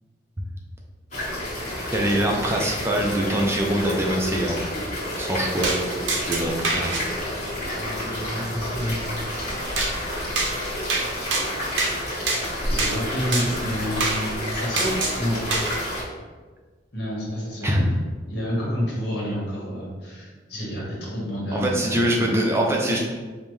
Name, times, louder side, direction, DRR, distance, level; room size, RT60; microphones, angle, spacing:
sound 1, 1.1-16.0, left 1 dB, 40° left, 1.4 m, -30 dB
voice 1, 1.9-4.6 5.2-5.7 6.2-6.9 17.6-17.8 21.5-23.0, right 1 dB, 15° right, -1 dB, 0.4 m, -23 dB
sound 2, 5.6-5.8 6.1-7.0 9.8-9.9 10.4-10.5 10.9-11.1 11.3-11.9 12.3-12.4 12.8-12.9 13.3-13.5 14.0-14.2 14.8-15.2 15.5-15.8, right 3 dB, 85° right, 0.7 m, -24 dB
voice 2, 7.7-9.0 12.7-15.4 16.9-17.7 18.3-22.0, equal, 65° left, -5 dB, 1.3 m, -29 dB
5.1 x 2.1 x 3.1 m, 1.4 s
head